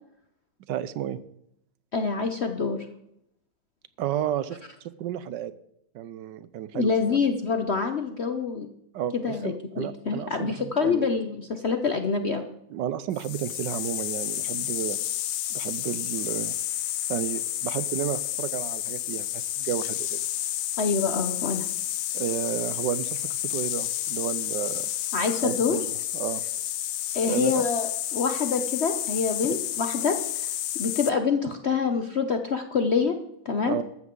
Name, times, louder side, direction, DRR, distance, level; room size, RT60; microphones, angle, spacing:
voice 1, 0.7-1.2 4.0-5.5 5.9-7.2 8.9-11.1 12.7-15.0 15.5-16.5 17.1-20.2 22.1-24.9 25.4-26.5 27.3-27.7 33.6-33.8, right 10 dB, 75° right, 15 dB, 1.2 m, -32 dB
voice 2, 1.9-2.8 6.7-8.7 9.1-12.5 20.8-21.7 25.1-25.8 27.1-30.5 30.7-33.2 33.4-33.8, left 5 dB, 55° left, 7 dB, 0.7 m, -26 dB
sound 1, 13.1-31.1, left 13 dB, 75° left, 1.3 m, -30 dB
14.5 x 12.5 x 3.8 m, 0.78 s
omnidirectional pair, 2.0 m